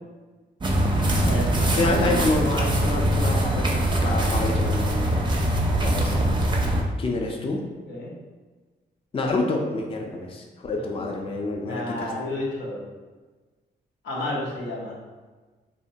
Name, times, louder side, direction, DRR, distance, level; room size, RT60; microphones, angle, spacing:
sound 1, 0.6-6.8, right 1 dB, 25° right, 0.5 m, -22 dB
voice 1, 1.3-1.8 7.9-8.1 10.9-11.1 11.6-13.0 14.0-15.0, left 2 dB, 85° left, -5 dB, 0.7 m, -31 dB
voice 2, 1.8-5.1 5.8-6.1 7.0-7.6 9.1-12.1, left 2 dB, 30° left, 1 dB, 0.4 m, -27 dB
2.7 x 2.1 x 2.7 m, 1.3 s
cardioid pair, 60°, 18 cm